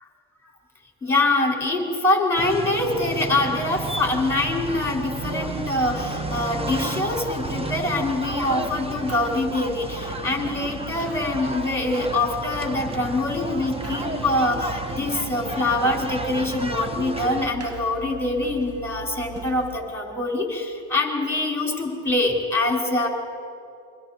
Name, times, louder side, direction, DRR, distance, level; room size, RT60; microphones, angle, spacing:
voice 1, 1.0-23.1, left 2 dB, 5° left, 0 dB, 5.2 m, -24 dB
sound 1, 2.3-17.5, right 2 dB, 10° right, 1.3 m, -32 dB
sound 2, 3.7-19.8, right 5 dB, 30° right, 1.7 m, -40 dB
28.0 x 24.0 x 4.6 m, 2.6 s
supercardioid pair, 80°, 48 cm